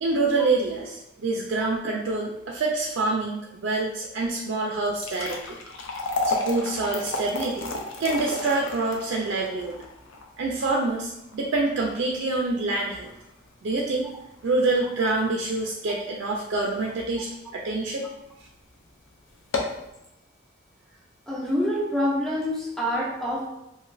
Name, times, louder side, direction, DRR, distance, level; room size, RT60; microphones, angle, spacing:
voice 1, 0.0-5.6 6.2-7.7 8.0-9.7 10.4-13.1 13.6-14.1 14.4-18.1, right 3 dB, 65° right, -2 dB, 0.4 m, -26 dB
sound 1, 4.8-17.1 17.5-17.6 18.3-18.5 18.8-18.9 19.3-19.9, left 2 dB, 75° left, 0.5 m, -33 dB
voice 2, 21.3-23.5, equal, ahead, -4 dB, 0.5 m, -26 dB
2.5 x 2.4 x 3.1 m, 0.88 s
head